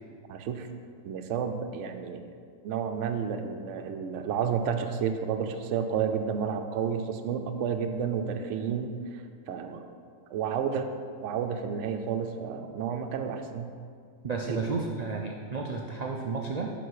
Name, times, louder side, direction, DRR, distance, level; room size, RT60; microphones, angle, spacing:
voice 1, 0.3-0.7 1.0-2.3 2.6-9.9 10.3-10.9 11.2-13.7 14.5-14.6, right 7 dB, 65° right, 6 dB, 0.9 m, -31 dB
voice 2, 14.2-16.7, right 4 dB, 90° right, 1 dB, 0.3 m, -32 dB
10.5 x 4.0 x 4.7 m, 2.2 s
omnidirectional pair, 1.5 m